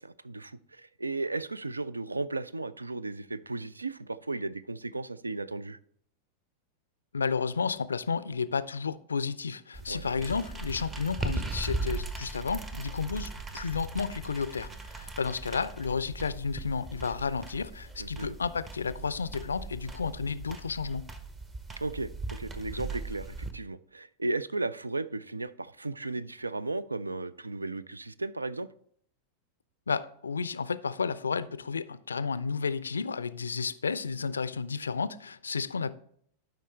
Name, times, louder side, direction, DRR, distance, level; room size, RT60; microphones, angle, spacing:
voice 1, 0.0-5.8 9.9-10.3 18.0-18.4 21.8-28.7, right 3 dB, 80° right, 0.3 m, -35 dB
voice 2, 7.1-21.0 29.9-35.9, left 5 dB, 75° left, 0.3 m, -32 dB
sound 1, 9.7-23.5, right 2 dB, 20° right, 0.8 m, -39 dB
11.5 x 5.2 x 3.2 m
figure-of-eight pair, 90°, 0 cm